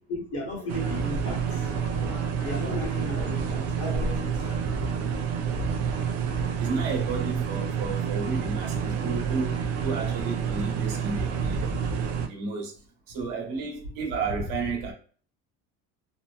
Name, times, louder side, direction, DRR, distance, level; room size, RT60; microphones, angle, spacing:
voice 1, 0.1-5.0, left 1 dB, 40° left, 1.0 m, -36 dB
sound 1, 0.7-12.3, right 6 dB, 45° right, 0.4 m, -28 dB
voice 2, 6.6-11.7 12.2-12.7 13.1-14.9, right 4 dB, 60° right, 1.1 m, -32 dB
2.6 x 2.1 x 2.3 m
cardioid pair, 150°, 36 cm